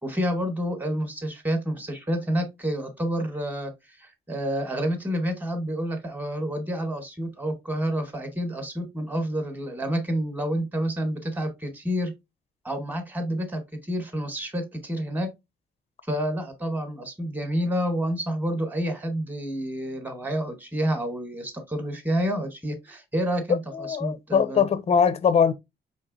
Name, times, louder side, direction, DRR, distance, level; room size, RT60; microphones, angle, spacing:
voice 1, 0.0-3.7 4.0-12.1 12.6-15.3 16.1-24.7, equal, 10° right, 1.1 m, -29 dB
voice 2, 23.7-25.5, left 7 dB, 30° left, 0.5 m, -21 dB
4.1 x 3.3 x 2.5 m
cardioid pair, 90°, 20 cm